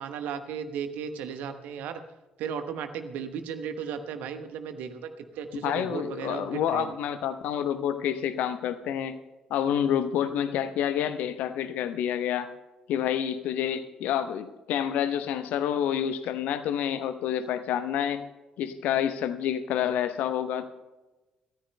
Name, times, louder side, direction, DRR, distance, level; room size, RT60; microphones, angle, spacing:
voice 1, 0.0-2.0 2.4-5.1 5.3-6.9, right 7 dB, 60° right, 8 dB, 1.2 m, -35 dB
voice 2, 5.6-9.2 9.5-12.5 12.9-18.3 18.6-20.7, left 9 dB, 60° left, 11 dB, 0.9 m, -28 dB
25.5 x 14.0 x 2.2 m, 1.1 s
figure-of-eight pair, 45°, 3 cm